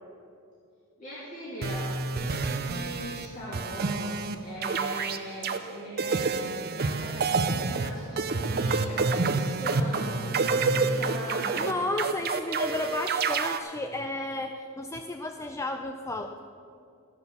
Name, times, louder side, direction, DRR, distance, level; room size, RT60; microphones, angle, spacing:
voice 1, 1.0-11.7, equal, 35° left, -7 dB, 2.5 m, -40 dB
sound 1, 1.6-3.3 3.5-4.4 4.6-5.6 6.0-13.6, right 4 dB, 45° right, 0.6 m, -28 dB
voice 2, 11.6-16.4, left 2 dB, 15° left, 6 dB, 0.4 m, -33 dB
14.0 x 6.3 x 7.0 m, 2.5 s
head